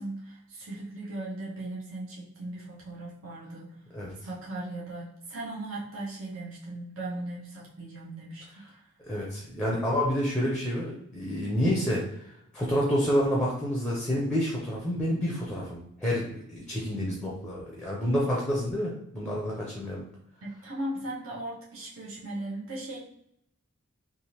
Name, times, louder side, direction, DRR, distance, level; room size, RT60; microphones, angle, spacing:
voice 1, 0.0-3.7 4.2-8.4 20.4-23.0, right 1 dB, 65° right, -5 dB, 0.9 m, -38 dB
voice 2, 9.0-12.0 12.5-20.0, equal, 5° left, -4 dB, 0.6 m, -28 dB
3.4 x 2.5 x 2.8 m, 0.73 s
head